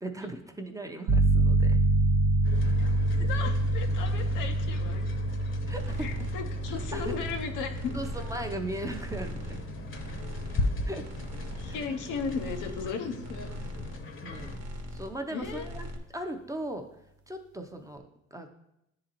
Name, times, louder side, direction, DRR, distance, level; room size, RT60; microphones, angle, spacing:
voice 1, 0.0-1.8 3.2-3.3 5.7-6.2 6.9-7.1 7.9-9.7 10.8-11.1 11.7-11.8 13.5-13.8 14.2-15.9 16.1-16.9 17.3-18.5, right 1 dB, 10° right, 4 dB, 0.6 m, -38 dB
sound 1, 1.1-11.6, right 2 dB, 85° right, 1.0 m, -27 dB
sound 2, 2.4-14.6, left 3 dB, 40° left, 0.8 m, -39 dB
voice 2, 3.2-5.1 6.0-7.9 11.6-13.5 15.3-15.7, left 5 dB, 85° left, 5 dB, 0.7 m, -36 dB
sound 3, 5.8-6.3 6.6-7.5 7.7-8.6 8.8-9.7 9.9-10.7 11.0-11.9 12.1-12.9 13.2-14.0 14.3-15.1 15.4-16.0, equal, 60° right, 1.0 m, -40 dB
9.8 x 3.8 x 2.9 m, 0.81 s
cardioid pair, 90°, 30 cm